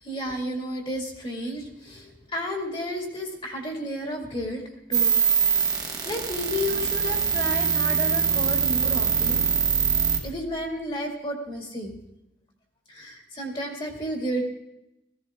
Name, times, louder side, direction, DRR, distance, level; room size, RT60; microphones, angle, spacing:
voice 1, 0.0-4.6 4.9-5.2 6.0-9.4 10.2-11.9 12.9-14.5, equal, 25° left, 1 dB, 2.1 m, -32 dB
sound 1, 4.9-10.2, right 7 dB, 20° right, 1.3 m, -23 dB
15.5 x 15.0 x 3.6 m, 0.89 s
head